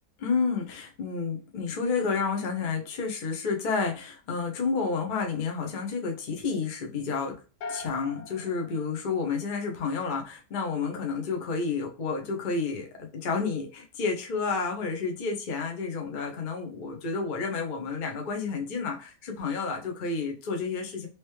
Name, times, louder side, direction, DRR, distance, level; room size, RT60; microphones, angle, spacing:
voice 1, 0.2-7.3 7.7-21.1, left 4 dB, 60° left, 2 dB, 0.5 m, -30 dB
sound 1, 7.6-9.9, left 3 dB, 80° left, 1.2 m, -42 dB
3.2 x 2.9 x 3.0 m, 0.35 s
omnidirectional pair, 1.8 m